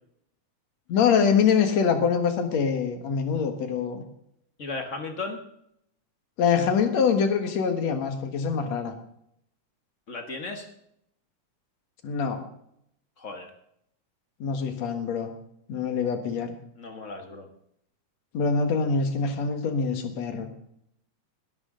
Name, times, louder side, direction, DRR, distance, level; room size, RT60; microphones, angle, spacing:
voice 1, 0.9-4.0 6.4-8.9 12.0-12.4 14.4-15.3 15.7-16.5 18.3-20.5, left 6 dB, 65° left, 6 dB, 2.7 m, -24 dB
voice 2, 4.6-5.4 10.1-10.7 13.2-13.5 16.8-17.5, left 3 dB, 45° left, 5 dB, 1.0 m, -35 dB
20.5 x 12.5 x 3.8 m, 0.74 s
omnidirectional pair, 3.5 m